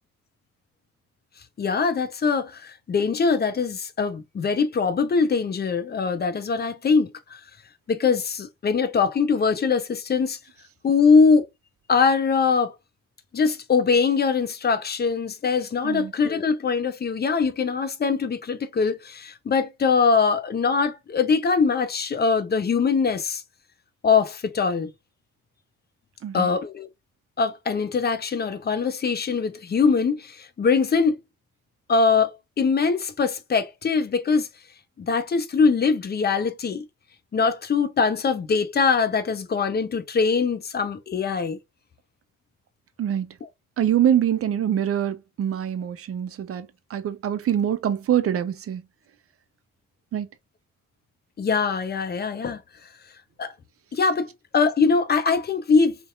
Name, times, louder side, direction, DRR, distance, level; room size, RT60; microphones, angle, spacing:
voice 1, 1.6-7.4 7.9-10.4 10.8-11.5 11.9-12.7 13.3-23.4 24.0-24.9 26.3-26.9 27.4-31.2 31.9-34.5 35.0-36.9 37.3-41.6 51.4-52.6 53.4-53.5 53.9-56.0, left 5 dB, 25° left, 0.5 m, -22 dB
voice 2, 43.0-43.3 43.8-48.8 50.1-50.3, right 10 dB, 35° right, 0.5 m, -24 dB
2.6 x 2.1 x 2.4 m
hypercardioid pair, 40°, 40 cm